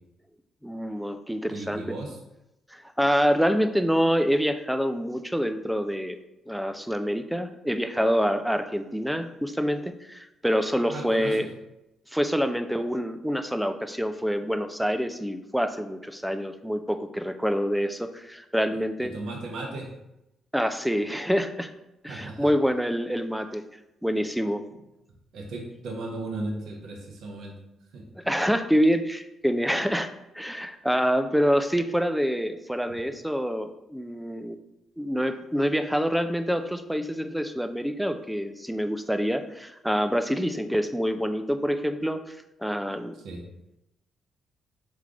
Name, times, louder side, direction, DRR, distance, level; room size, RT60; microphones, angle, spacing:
voice 1, 0.6-1.8 2.7-6.2 6.5-11.5 12.1-19.1 20.5-21.7 22.0-23.6 24.0-24.6 28.2-30.1 30.3-34.6 35.0-42.4 42.6-43.1, equal, ahead, 8 dB, 0.3 m, -26 dB
voice 2, 1.5-2.2 10.8-11.5 19.0-19.9 22.1-22.5 25.3-27.6 27.9-28.0 32.9-33.0 43.2-43.4, right 2 dB, 75° right, 1 dB, 1.0 m, -36 dB
3.6 x 3.2 x 3.7 m, 0.89 s
cardioid pair, 90°, 0 cm